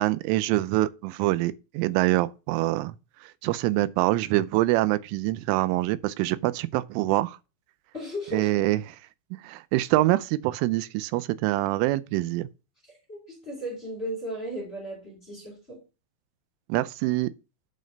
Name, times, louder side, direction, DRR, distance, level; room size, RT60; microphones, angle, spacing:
voice 1, 0.0-2.9 3.2-7.4 8.3-8.8 9.4-12.5 16.7-17.3, right 17 dB, 85° right, 3.1 m, -25 dB
voice 2, 7.9-8.6 13.1-15.8, equal, 15° left, 2.6 m, -35 dB
9.5 x 5.3 x 5.2 m
omnidirectional pair, 5.6 m